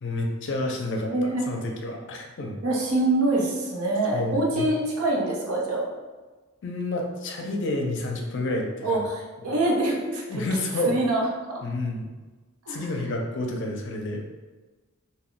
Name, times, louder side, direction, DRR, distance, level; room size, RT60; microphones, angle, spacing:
voice 1, 0.0-2.6 4.1-4.7 6.6-9.0 9.4-9.6 10.3-11.0 11.6-12.1 12.7-14.4, left 1 dB, 60° left, 1 dB, 0.5 m, -29 dB
voice 2, 1.1-1.4 2.6-5.9 8.8-10.4 10.9-11.2 12.7-12.9, right 2 dB, 90° right, -2 dB, 0.7 m, -25 dB
2.3 x 2.2 x 3.6 m, 1.3 s
head